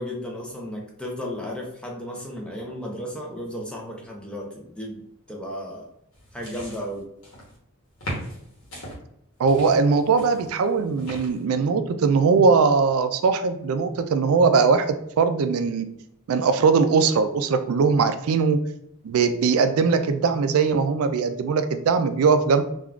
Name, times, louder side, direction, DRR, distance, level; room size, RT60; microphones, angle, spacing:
voice 1, 0.0-5.9 6.3-7.1, equal, 5° left, -1 dB, 0.4 m, -34 dB
sound 1, 6.1-7.6 8.0-9.0 9.5-11.4, equal, 60° left, 1.0 m, -38 dB
voice 2, 9.4-15.9 16.3-18.6 19.0-22.6, right 5 dB, 70° right, 10 dB, 0.3 m, -20 dB
3.5 x 2.3 x 2.3 m, 0.75 s
head